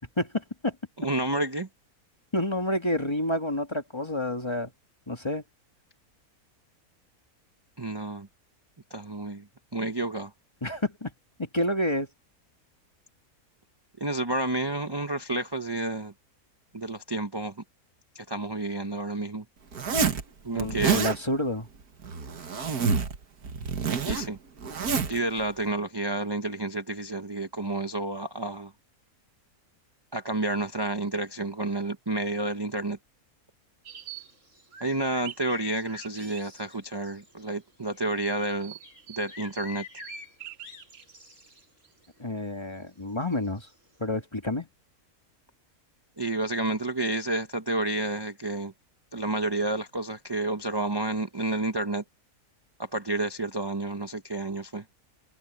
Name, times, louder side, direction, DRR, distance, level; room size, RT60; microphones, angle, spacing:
voice 1, 0.2-0.7 2.3-4.7 5.1-5.4 10.6-11.1 11.4-12.1 20.5-21.7 42.2-43.7 44.0-44.7, left 1 dB, 20° left, 1.6 m, -29 dB
voice 2, 1.0-1.7 7.8-8.3 8.9-9.5 9.7-10.3 14.0-16.1 16.7-17.5 18.1-19.4 20.4-21.0 24.1-24.4 25.1-28.7 30.1-33.0 34.8-38.7 39.2-39.8 46.2-48.7 49.1-52.0 52.8-54.8, right 2 dB, 20° right, 0.9 m, -30 dB
Zipper (clothing), 19.7-20.2 20.6-21.2 22.0-23.2 23.4-25.2, right 6 dB, 90° right, 2.0 m, -27 dB
sound 1, 33.9-37.4 37.9-42.1 43.3-43.4 43.7-44.0, right 2 dB, 55° right, 5.2 m, -44 dB
omnidirectional pair, 1.6 m